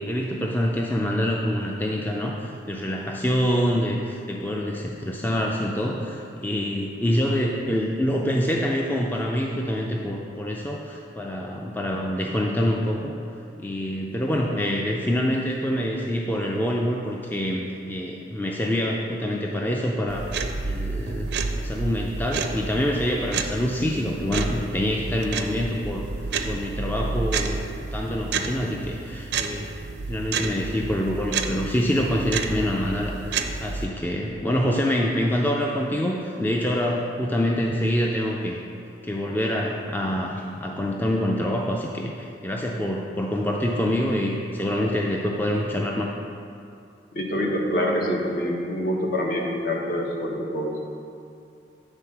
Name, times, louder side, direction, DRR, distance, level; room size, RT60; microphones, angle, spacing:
voice 1, 0.0-13.1 13.6-26.1 26.4-29.7 30.1-38.6 39.0-46.1, equal, 10° left, -1 dB, 0.4 m, -26 dB
sound 1, 20.1-33.9, right 4 dB, 70° right, 0.5 m, -30 dB
voice 2, 47.1-50.8, equal, 55° left, -1 dB, 1.1 m, -26 dB
9.0 x 3.9 x 5.7 m, 2.5 s
head